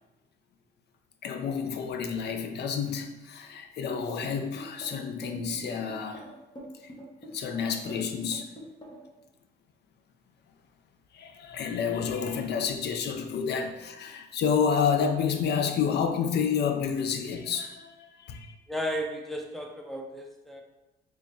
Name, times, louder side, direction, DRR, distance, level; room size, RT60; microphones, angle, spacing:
voice 1, 1.2-6.3 7.3-8.5 11.1-18.5, left 6 dB, 60° left, 0.4 m, -29 dB
sound 1, 3.9-9.1, equal, 25° left, 0.9 m, -44 dB
voice 2, 18.7-20.6, equal, ahead, 0.5 m, -34 dB
3.3 x 3.1 x 2.7 m
cardioid pair, 90°, 20 cm